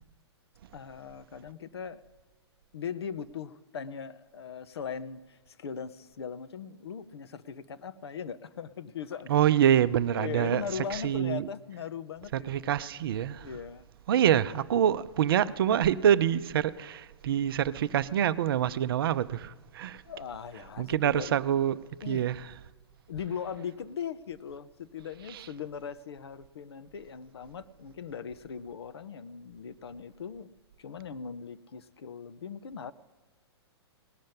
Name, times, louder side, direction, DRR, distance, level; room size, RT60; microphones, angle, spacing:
voice 1, 0.7-2.0 2.7-9.3 10.2-12.7 13.4-13.8 20.1-21.3 22.0-22.3 23.1-30.5 30.8-32.9, left 7 dB, 65° left, 0.7 m, -39 dB
voice 2, 9.3-10.6 10.9-11.5 12.3-13.5 14.1-20.0 20.8-22.5 25.3-25.5, right 10 dB, 55° right, 0.5 m, -26 dB
18.5 x 6.4 x 8.6 m
figure-of-eight pair, 110°, 14 cm